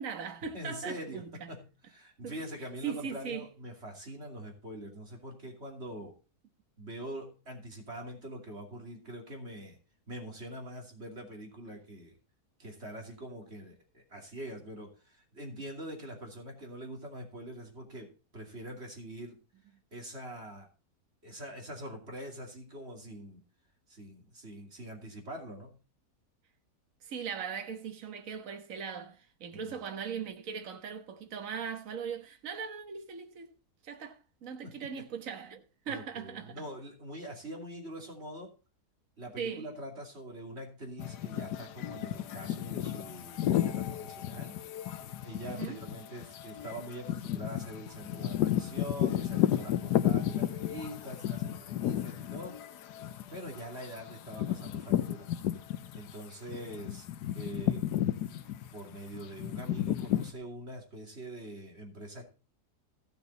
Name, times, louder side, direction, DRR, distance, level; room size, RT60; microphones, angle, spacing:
voice 1, 0.0-1.5 2.2-2.3 2.8-3.5 27.0-33.5 33.8-36.6 39.4-39.7 45.4-45.8, right 7 dB, 55° right, 1.6 m, -39 dB
voice 2, 0.5-6.1 6.8-9.8 10.1-12.2 12.6-19.4 19.9-20.7 21.2-23.4 23.9-25.8 29.5-29.7 34.6-34.9 35.8-38.5 39.2-44.6 44.9-52.6 53.3-55.3 55.9-57.1 57.3-57.9 58.7-62.3, right 1 dB, 40° right, 3.0 m, -44 dB
sound 1, 41.0-56.1 56.5-60.3, left 11 dB, 90° left, 1.3 m, -33 dB
15.5 x 6.8 x 4.0 m
omnidirectional pair, 1.7 m